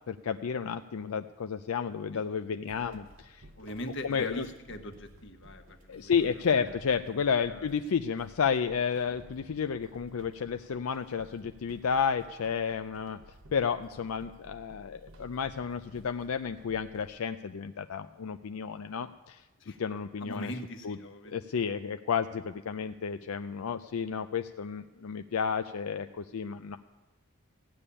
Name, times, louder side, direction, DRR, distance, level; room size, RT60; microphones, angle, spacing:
voice 1, 0.1-3.4 4.0-4.5 5.9-13.2 13.5-19.4 19.8-20.5 20.8-21.0 21.3-26.8, left 6 dB, 85° left, 8 dB, 0.5 m, -31 dB
sound 1, 2.7-17.2, right 1 dB, 65° right, 0.9 m, -55 dB
voice 2, 3.5-6.8 7.1-7.7 19.6-19.8 20.2-21.4, left 1 dB, 60° left, 5 dB, 1.4 m, -42 dB
15.5 x 7.0 x 10.0 m, 1.1 s
head